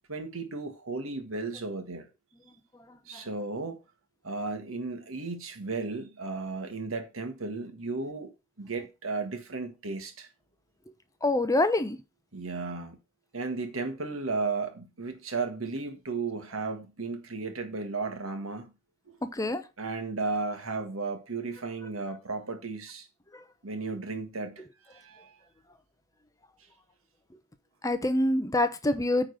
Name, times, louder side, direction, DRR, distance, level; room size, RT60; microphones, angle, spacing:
voice 1, 0.1-2.1 3.1-3.8 4.2-8.3 8.6-10.3 12.3-13.0 13.3-18.7 19.1-19.2 19.8-23.1 23.6-25.3, right 3 dB, 85° right, 1.7 m, -34 dB
voice 2, 2.7-3.3 11.2-12.0 19.2-19.7 23.3-23.4 27.8-29.3, left 2 dB, 15° left, 0.7 m, -26 dB
9.1 x 3.9 x 6.6 m
head